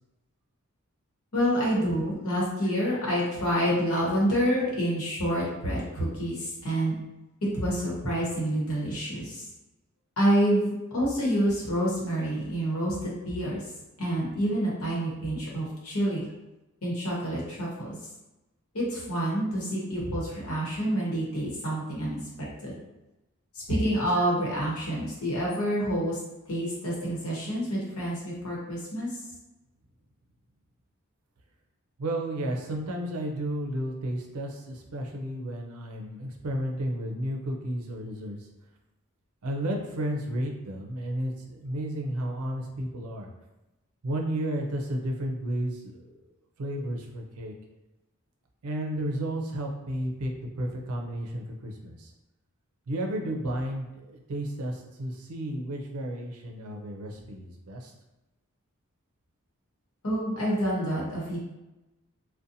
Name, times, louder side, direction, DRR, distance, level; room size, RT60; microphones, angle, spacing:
voice 1, 1.3-6.9 7.5-9.4 10.2-13.6 14.0-16.2 16.8-18.0 18.7-22.7 23.7-26.2 26.5-29.1 60.0-61.4, equal, 80° left, -5 dB, 1.0 m, -28 dB
voice 2, 32.0-38.4 39.4-43.3 44.0-46.2 46.6-47.5 48.6-52.1 52.9-57.9, right 1 dB, 85° right, 2 dB, 0.5 m, -32 dB
2.6 x 2.1 x 2.6 m, 1.0 s
head